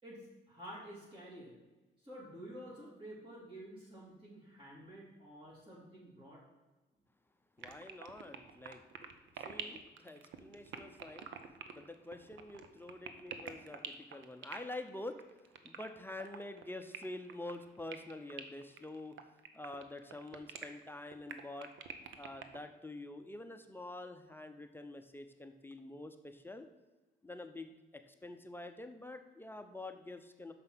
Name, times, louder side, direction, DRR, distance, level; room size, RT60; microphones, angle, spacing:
voice 1, 0.0-1.6 2.0-6.4, equal, 25° right, -7 dB, 3.0 m, -50 dB
voice 2, 7.6-8.8 9.3-11.3 11.7-15.2 15.6-19.2 19.5-21.7 22.2-26.7 27.2-30.5, left 2 dB, 10° left, 7 dB, 0.7 m, -47 dB
sound 1, 7.6-22.6, right 7 dB, 75° right, 0.9 m, -47 dB
6.7 x 5.5 x 6.1 m, 1.2 s
cardioid pair, 90°, 20 cm